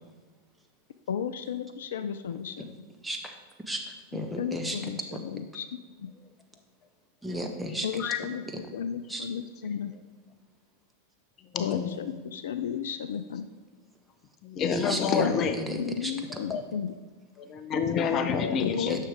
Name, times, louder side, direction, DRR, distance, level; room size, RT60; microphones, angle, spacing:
voice 1, 1.1-2.7 4.4-6.1 7.8-8.4 8.7-9.9 11.6-13.5 15.2-15.4 15.7-16.9 18.6-19.1, left 8 dB, 60° left, 11 dB, 0.3 m, -34 dB
voice 2, 3.0-3.4 3.7-4.8 7.2-8.0 8.5-8.7 9.1-9.3 14.7-16.1 18.9-19.1, right 1 dB, 5° right, 2 dB, 1.0 m, -34 dB
voice 3, 11.5-12.0 14.4-15.6 16.5-16.6 17.4-19.0, left 6 dB, 30° left, 9 dB, 0.7 m, -28 dB
9.9 x 6.4 x 3.4 m, 1.4 s
figure-of-eight pair, 90°, 0 cm